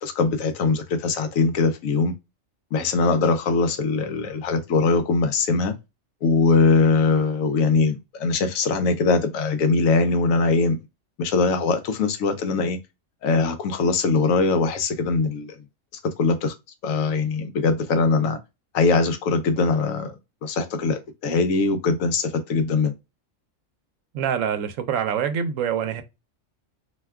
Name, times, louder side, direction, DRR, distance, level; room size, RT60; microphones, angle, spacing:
voice 1, 0.0-2.1 2.7-5.7 6.2-10.8 11.2-12.8 13.2-15.6 16.2-16.5 16.8-18.4 18.7-22.9, left 4 dB, 80° left, 1.0 m, -21 dB
voice 2, 24.1-26.0, right 8 dB, 75° right, 0.9 m, -25 dB
2.7 x 2.2 x 3.4 m
omnidirectional pair, 1.4 m